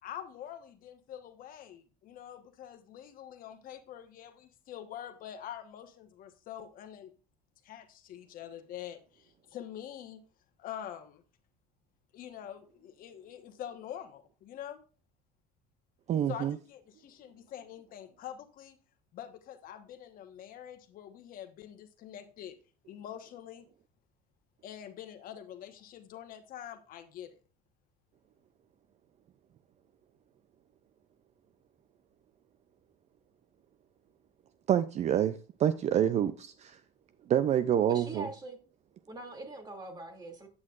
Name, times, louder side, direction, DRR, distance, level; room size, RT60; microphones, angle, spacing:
voice 1, 0.0-7.1 7.6-10.2 10.6-11.2 12.1-14.8 16.3-18.8 19.1-22.6 22.9-23.6 24.6-27.4, left 10 dB, 60° left, 1.2 m, -45 dB
voice 2, 16.1-16.6 34.7-36.8 37.3-38.3, right 10 dB, 40° right, 0.5 m, -27 dB
voice 3, 37.9-38.6 39.1-40.5, right 2 dB, 25° right, 2.5 m, -43 dB
9.2 x 8.6 x 2.5 m
cardioid pair, 115°, 17 cm